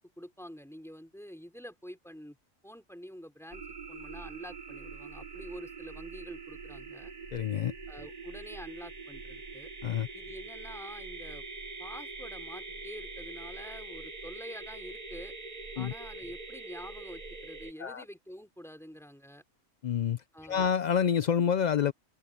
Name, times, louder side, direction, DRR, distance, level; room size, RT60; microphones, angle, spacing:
voice 1, 0.0-2.4 2.6-7.1 7.9-9.7 10.1-11.4 11.8-15.3 15.7-19.4 20.3-20.7, equal, ahead, 3.5 m, -47 dB
sound 1, 3.5-17.7, right 4 dB, 35° right, 1.3 m, -44 dB
voice 2, 7.3-7.7 9.8-10.1 15.8-15.9 17.8-18.0 19.8-20.2 20.5-21.9, left 8 dB, 60° left, 0.4 m, -27 dB
open air
omnidirectional pair, 1.3 m